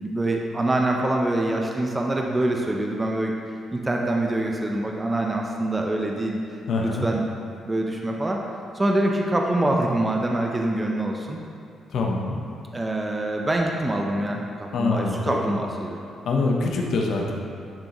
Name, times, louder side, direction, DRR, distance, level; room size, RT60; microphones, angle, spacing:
voice 1, 0.0-3.3 3.7-6.4 6.8-7.2 7.6-8.4 8.7-11.4 12.7-16.0, right 1 dB, 20° right, 0 dB, 0.6 m, -25 dB
voice 2, 6.7-7.0 11.9-12.4 14.7-15.4 16.2-17.3, left 3 dB, 70° left, 0 dB, 0.9 m, -24 dB
10.5 x 3.8 x 3.0 m, 2.5 s
supercardioid pair, 70°, 0 cm